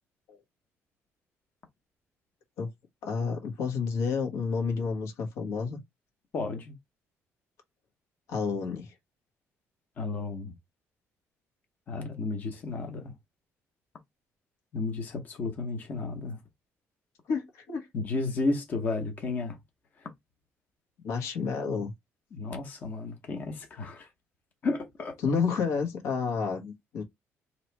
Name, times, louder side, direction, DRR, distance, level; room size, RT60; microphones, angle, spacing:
voice 1, 3.0-5.8 8.3-8.9 17.3-17.9 21.0-21.9 25.2-27.0, left 5 dB, 90° left, 1.4 m, -30 dB
voice 2, 6.3-6.7 10.0-10.5 11.9-13.1 14.7-16.4 17.9-19.6 22.3-24.1 24.6-25.2, left 3 dB, 35° left, 0.9 m, -32 dB
3.0 x 2.8 x 4.5 m
cardioid pair, 180°, 5 cm